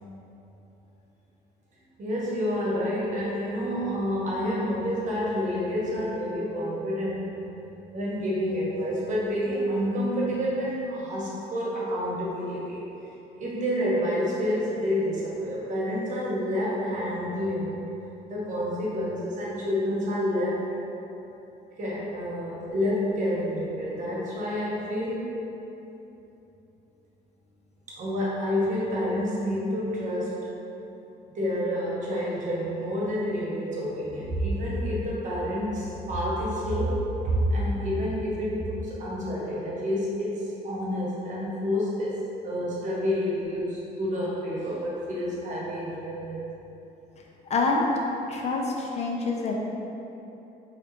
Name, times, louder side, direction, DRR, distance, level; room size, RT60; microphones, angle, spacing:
voice 1, 2.0-7.3 7.9-12.8 13.4-17.8 18.3-20.7 21.8-25.3 27.9-30.5 31.3-42.2 42.4-46.4, equal, 45° right, -5 dB, 1.1 m, -28 dB
voice 2, 47.4-47.9 48.3-49.5, left 3 dB, 40° left, 0 dB, 0.4 m, -26 dB
3.8 x 3.2 x 3.1 m, 3.0 s
cardioid pair, 110°, 17 cm